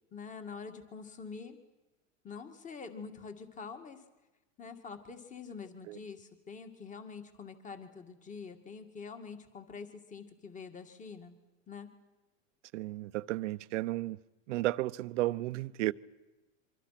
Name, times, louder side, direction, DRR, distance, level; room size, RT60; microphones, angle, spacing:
voice 1, 0.1-1.6 2.2-4.0 4.6-11.4 11.7-11.9, left 5 dB, 20° left, 2.3 m, -46 dB
voice 2, 12.7-14.2 14.5-15.9, right 17 dB, 70° right, 0.9 m, -33 dB
26.5 x 24.5 x 6.0 m
supercardioid pair, 130°, 38 cm